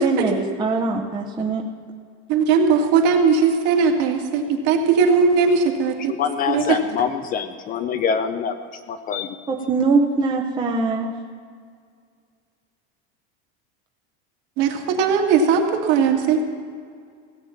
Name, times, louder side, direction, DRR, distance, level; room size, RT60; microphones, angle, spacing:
voice 1, 0.0-1.7 9.5-11.2, right 3 dB, 15° right, 1 dB, 0.8 m, -22 dB
voice 2, 2.3-6.1 6.5-6.8 14.6-16.4, right 5 dB, 55° right, 2 dB, 2.2 m, -18 dB
voice 3, 6.1-9.4, left 6 dB, 25° left, 9 dB, 0.5 m, -25 dB
17.0 x 9.0 x 7.2 m, 2.1 s
supercardioid pair, 160°, 35 cm